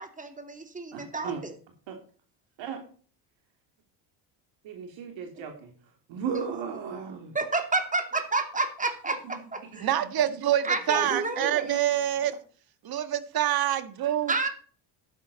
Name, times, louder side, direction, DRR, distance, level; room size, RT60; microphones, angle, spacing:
voice 1, 0.0-1.5 7.3-10.0 10.6-11.7 14.3-14.5, right 3 dB, 15° right, 2.8 m, -30 dB
voice 2, 0.9-1.4 1.9-2.0 2.6-2.8 4.6-5.5 6.1-7.2 9.7-9.8 11.1-11.8, right 7 dB, 65° right, 2.9 m, -35 dB
voice 3, 9.8-12.4 12.8-14.5, right 11 dB, 45° right, 1.6 m, -26 dB
11.5 x 10.5 x 4.1 m
cardioid pair, 105°, 49 cm